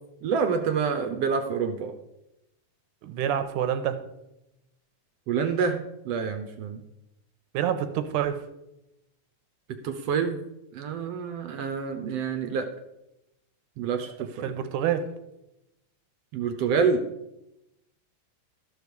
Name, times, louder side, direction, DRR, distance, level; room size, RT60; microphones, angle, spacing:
voice 1, 0.2-1.9 5.3-5.8 6.0-6.8 9.8-10.4 10.7-12.7 13.8-14.5 16.3-17.0, right 6 dB, 70° right, 7 dB, 1.6 m, -27 dB
voice 2, 3.0-4.0 7.5-8.4 14.4-15.1, right 9 dB, 85° right, 10 dB, 2.4 m, -27 dB
13.0 x 4.9 x 6.8 m, 0.89 s
omnidirectional pair, 3.5 m